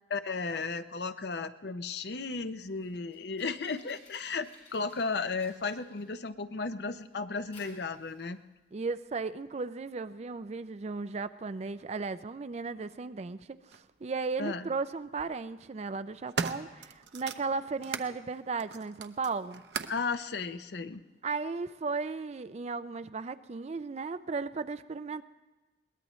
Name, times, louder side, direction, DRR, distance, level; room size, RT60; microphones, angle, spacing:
voice 1, 0.1-8.4 14.4-14.7 19.9-21.0, left 4 dB, 65° left, 11 dB, 0.6 m, -34 dB
Fire, 2.6-19.9, left 1 dB, 35° left, 7.2 m, -63 dB
voice 2, 8.7-19.6 21.2-25.2, right 4 dB, 35° right, 13 dB, 0.4 m, -35 dB
sound 1, 13.7-13.8 14.9-15.3 15.8-18.1 18.6-20.1 20.9-21.0, right 5 dB, 70° right, 0.7 m, -38 dB
21.5 x 18.5 x 3.1 m, 1.2 s
head